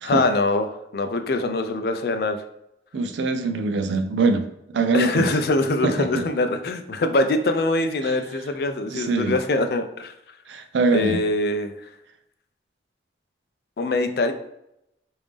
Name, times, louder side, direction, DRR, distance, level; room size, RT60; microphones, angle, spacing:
voice 1, 0.0-2.4 4.9-10.1 10.9-11.7 13.8-14.3, left 2 dB, 55° left, 8 dB, 0.4 m, -23 dB
voice 2, 2.9-4.5 4.7-5.3 5.8-6.3 8.0-8.2 8.9-9.4 10.5-11.2, right 3 dB, 85° right, 8 dB, 0.4 m, -23 dB
3.3 x 2.6 x 3.3 m, 0.82 s
head